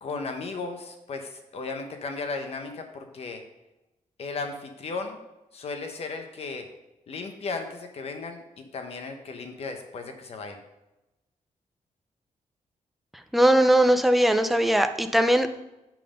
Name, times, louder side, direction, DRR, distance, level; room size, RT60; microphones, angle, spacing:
voice 1, 0.0-3.4 4.2-5.2 5.5-6.7 7.1-8.4 8.7-10.6, left 4 dB, 50° left, 5 dB, 1.1 m, -35 dB
voice 2, 13.3-15.6, right 1 dB, ahead, 7 dB, 0.4 m, -20 dB
7.6 x 5.6 x 5.2 m, 0.96 s
wide cardioid pair, 165°, 13 cm